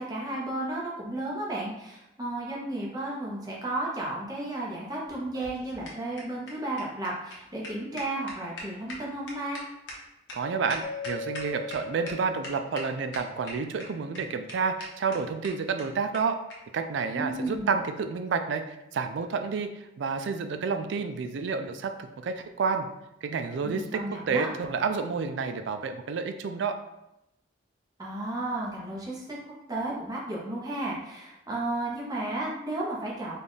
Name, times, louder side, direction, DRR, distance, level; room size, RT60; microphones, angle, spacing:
voice 1, 0.0-9.6 17.1-17.7 23.6-24.5 28.0-29.4 29.7-33.4, right 2 dB, 20° right, -4 dB, 0.8 m, -33 dB
sound 1, 5.1-11.8 12.1-12.2 12.4-12.8 13.1-13.8 14.1-14.2 14.5-14.6 14.8-14.9 15.1-15.2 15.4-15.5 15.8-15.9 16.1-16.2 16.5-16.6 17.4-17.6, left 1 dB, 60° left, 0.9 m, -41 dB
voice 2, 10.3-16.4 16.7-22.9 23.2-24.0 24.3-26.8, right 5 dB, 65° right, 8 dB, 0.3 m, -30 dB
Mallet percussion, 10.8-13.8, left 3 dB, 20° left, 0.5 m, -40 dB
3.4 x 2.3 x 4.0 m, 0.89 s
head